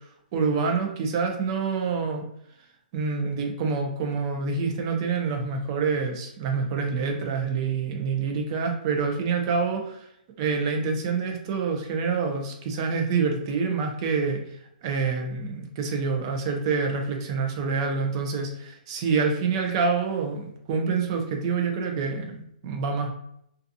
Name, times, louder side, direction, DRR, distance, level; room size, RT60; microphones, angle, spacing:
voice 1, 0.3-2.3 2.9-10.1 10.4-14.4 14.8-23.1, right 5 dB, 30° right, 3 dB, 0.4 m, -27 dB
2.6 x 2.2 x 2.6 m, 0.73 s
hypercardioid pair, 160°, 5 cm